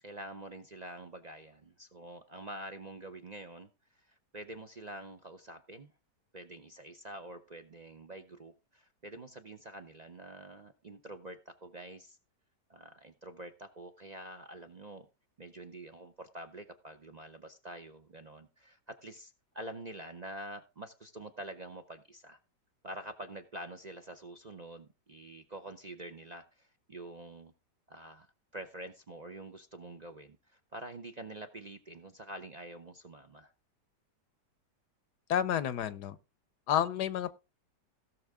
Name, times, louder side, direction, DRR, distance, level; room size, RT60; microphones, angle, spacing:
voice 1, 0.0-5.9 6.3-12.2 12.7-15.1 15.4-22.4 22.8-27.5 27.9-33.5, right 1 dB, 45° right, 0.5 m, -47 dB
voice 2, 35.3-36.2 36.7-37.3, left 10 dB, 80° left, 1.3 m, -30 dB
16.5 x 6.4 x 3.6 m
omnidirectional pair, 1.8 m